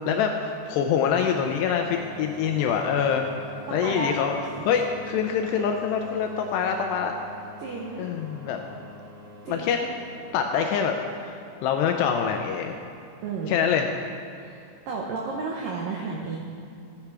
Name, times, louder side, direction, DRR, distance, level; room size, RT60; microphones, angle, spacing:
voice 1, 0.1-3.3 3.7-4.3 4.7-7.2 8.0-8.6 9.5-9.8 10.3-10.9 11.2-12.8 13.5-13.9, left 7 dB, 80° left, 3 dB, 2.5 m, -25 dB
sound 1, 1.1-12.5, equal, 55° right, 2.8 m, -44 dB
voice 2, 3.7-4.2 7.6-8.1 9.4-9.7 13.2-13.6 14.4-16.4, right 4 dB, 90° right, -1 dB, 1.9 m, -32 dB
14.0 x 10.0 x 4.8 m, 2.6 s
omnidirectional pair, 5.4 m